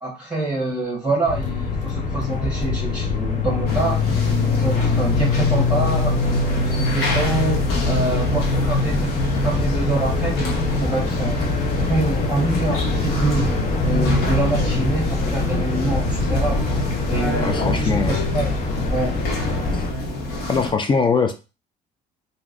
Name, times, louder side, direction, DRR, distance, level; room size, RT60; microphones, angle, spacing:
voice 1, 0.0-6.2 6.6-9.2 9.4-11.4 11.9-16.6 17.1-18.6 18.9-19.2 19.5-19.7, right 2 dB, 10° right, -6 dB, 1.3 m, -26 dB
sound 1, 1.3-19.9, left 3 dB, 45° left, 0.8 m, -23 dB
sound 2, 3.7-20.7, left 2 dB, 70° left, 1.0 m, -29 dB
voice 2, 17.4-18.3 20.5-21.3, left 5 dB, 30° left, 7 dB, 0.4 m, -21 dB
3.0 x 2.6 x 2.5 m, 0.30 s
cardioid pair, 110°, 17 cm